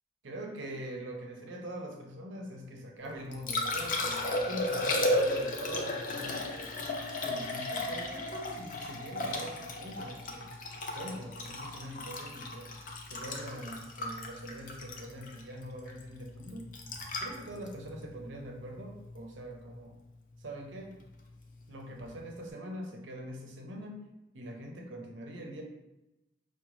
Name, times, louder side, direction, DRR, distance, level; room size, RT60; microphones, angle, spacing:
voice 1, 0.2-6.7 7.2-10.5 10.9-12.7 13.1-16.7 17.2-20.0 20.4-21.0 21.7-24.0 24.3-25.6, right 1 dB, 70° right, 2 dB, 0.6 m, -43 dB
Liquid, 3.1-19.2 22.0-22.1, left 1 dB, 45° left, 0.5 m, -34 dB
4.8 x 2.2 x 3.0 m, 0.97 s
head